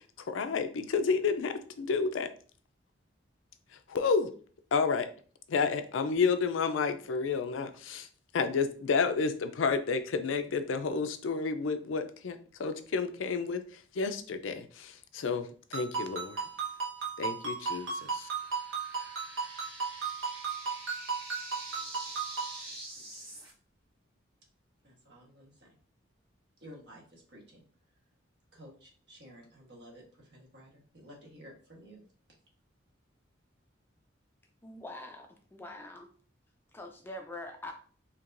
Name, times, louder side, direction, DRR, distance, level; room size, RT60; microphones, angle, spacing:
voice 1, 0.0-2.3 3.9-4.3 4.7-5.1 5.5-8.1 8.3-16.4 17.2-18.3, left 5 dB, 85° left, 9 dB, 0.4 m, -30 dB
Ringtone, 15.7-22.6, right 5 dB, 80° right, 1.2 m, -36 dB
sound 1, 17.6-23.5, right 1 dB, 15° right, 1.7 m, -46 dB
voice 2, 21.7-22.2 22.7-23.1 24.8-25.7 26.6-27.6 28.5-32.0, equal, 60° right, -1 dB, 1.3 m, -53 dB
voice 3, 34.6-36.1 36.7-37.7, left 1 dB, 10° left, 4 dB, 0.4 m, -44 dB
4.5 x 2.9 x 2.5 m, 0.43 s
head